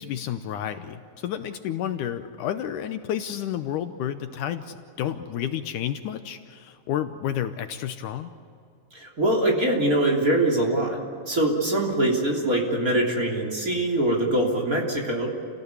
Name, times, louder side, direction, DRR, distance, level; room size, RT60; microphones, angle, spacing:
voice 1, 0.0-8.3, left 10 dB, 75° left, 9 dB, 2.2 m, -31 dB
voice 2, 8.9-11.0 11.2-15.3, right 1 dB, 25° right, 0 dB, 3.4 m, -23 dB
29.5 x 17.5 x 8.3 m, 2.5 s
omnidirectional pair, 4.0 m